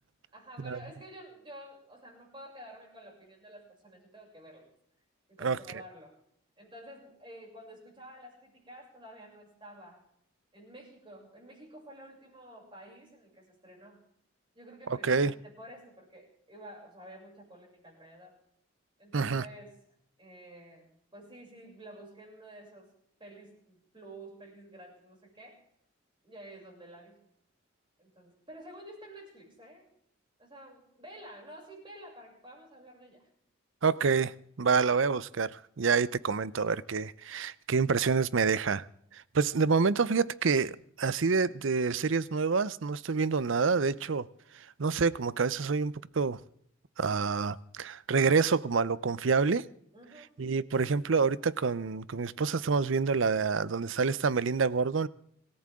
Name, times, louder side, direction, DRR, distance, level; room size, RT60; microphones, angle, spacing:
voice 1, 0.3-4.7 5.3-6.1 6.6-10.0 10.5-14.0 14.5-18.4 19.0-19.8 20.2-22.9 23.2-25.6 26.2-27.2 28.0-29.9 30.4-33.3 49.9-50.3, right 1 dB, 25° right, 6.8 m, -50 dB
voice 2, 14.9-15.3 19.1-19.5 33.8-38.8 39.1-44.3 44.8-46.4 47.0-49.6 50.4-55.1, right 5 dB, 75° right, 0.6 m, -27 dB
25.5 x 14.5 x 3.7 m
head